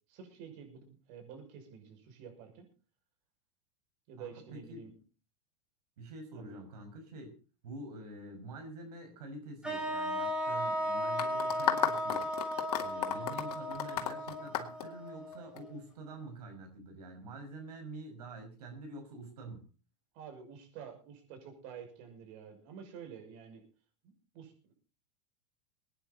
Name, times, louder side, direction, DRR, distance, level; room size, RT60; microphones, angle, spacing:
voice 1, 0.1-2.7 4.1-4.9 6.3-6.6 20.1-23.6 24.0-24.7, right 7 dB, 55° right, 5 dB, 5.9 m, -49 dB
voice 2, 4.2-4.9 6.0-7.4 7.6-12.3 12.8-19.6, right 2 dB, 80° right, 4 dB, 5.6 m, -46 dB
sound 1, 9.6-15.7, equal, 5° right, 3.3 m, -36 dB
sound 2, 11.2-15.6, left 11 dB, 75° left, 2.4 m, -33 dB
22.5 x 10.0 x 4.0 m, 0.35 s
hypercardioid pair, 115°, 20 cm